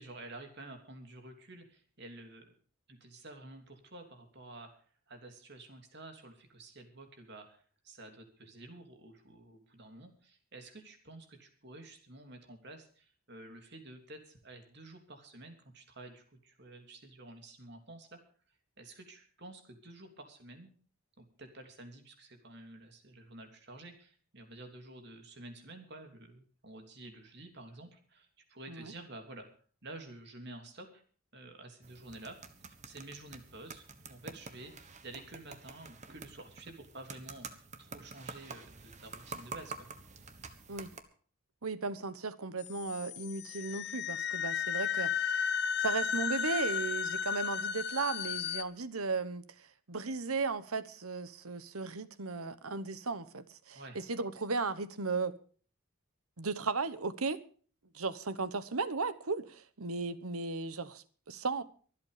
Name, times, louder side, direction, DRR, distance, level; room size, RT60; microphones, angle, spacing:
voice 1, 0.0-2.5 2.9-4.7 5.1-18.2 18.8-20.7 21.2-29.5 29.8-31.0 31.3-32.4 32.7-39.9 53.7-54.0, right 2 dB, 50° right, 3.0 m, -50 dB
sound 1, 31.8-41.0, right 4 dB, 35° right, 1.3 m, -48 dB
voice 2, 41.6-45.5 45.8-55.3 56.4-57.4 57.9-61.6, right 4 dB, 90° right, 1.2 m, -36 dB
sound 2, 42.6-48.6, left 7 dB, 50° left, 0.7 m, -34 dB
24.0 x 8.2 x 5.0 m
head